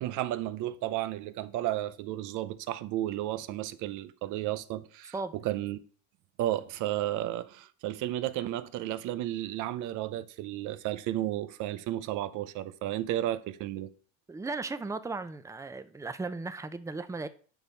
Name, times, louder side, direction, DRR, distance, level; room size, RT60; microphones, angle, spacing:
voice 1, 0.0-5.8 6.4-13.9, right 13 dB, 80° right, 0.7 m, -33 dB
voice 2, 14.3-17.3, right 3 dB, 10° right, 0.6 m, -36 dB
9.4 x 5.4 x 4.5 m
cardioid pair, 110°, 30 cm